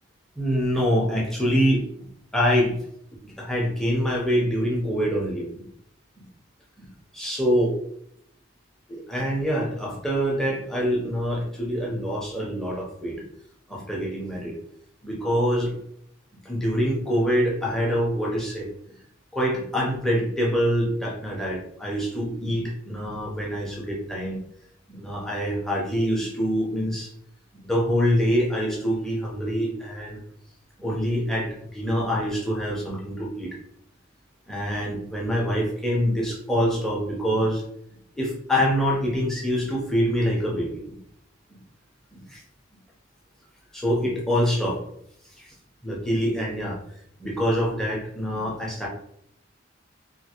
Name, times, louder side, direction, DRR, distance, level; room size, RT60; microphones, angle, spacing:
voice 1, 0.4-2.8 3.1-5.7 6.2-6.3 6.8-7.8 8.9-13.2 13.7-14.5 15.0-15.8 16.4-18.7 19.3-24.4 24.9-27.1 27.5-30.2 30.8-33.6 34.5-37.6 38.1-41.0 41.5-41.6 42.1-42.4 43.7-44.8 45.4-45.5 45.8-46.8 47.2-48.9, equal, ahead, -4 dB, 0.7 m, -25 dB
3.6 x 2.5 x 2.9 m, 0.73 s
head